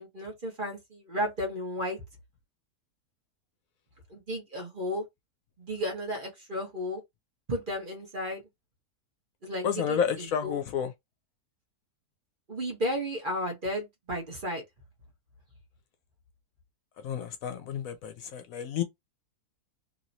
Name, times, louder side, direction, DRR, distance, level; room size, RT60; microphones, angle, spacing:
voice 1, 0.0-2.0 4.1-5.0 5.6-7.0 7.5-8.4 9.4-10.6 12.5-14.6, equal, 35° right, 1.2 m, -33 dB
voice 2, 9.6-10.9 17.0-18.8, left 8 dB, 70° left, 0.9 m, -30 dB
3.0 x 2.9 x 2.6 m
omnidirectional pair, 1.6 m